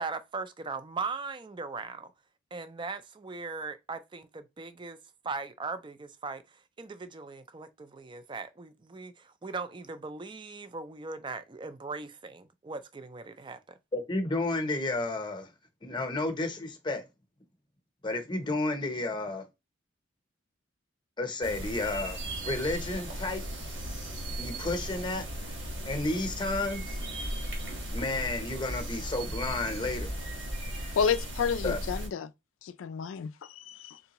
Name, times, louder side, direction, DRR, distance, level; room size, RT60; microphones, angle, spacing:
voice 1, 0.0-2.1 2.5-5.0 5.2-13.8, right 4 dB, 25° right, 0.4 m, -39 dB
voice 2, 13.9-15.5 15.8-17.0 18.0-19.4 21.2-23.4 24.4-25.3 25.8-27.0 27.9-30.2 31.6-31.8, left 2 dB, 25° left, 0.8 m, -31 dB
sound 1, 21.4-32.1, right 1 dB, 70° right, 1.4 m, -36 dB
voice 3, 31.0-32.3 32.6-34.0, left 6 dB, 90° left, 0.3 m, -30 dB
3.8 x 3.4 x 2.9 m
head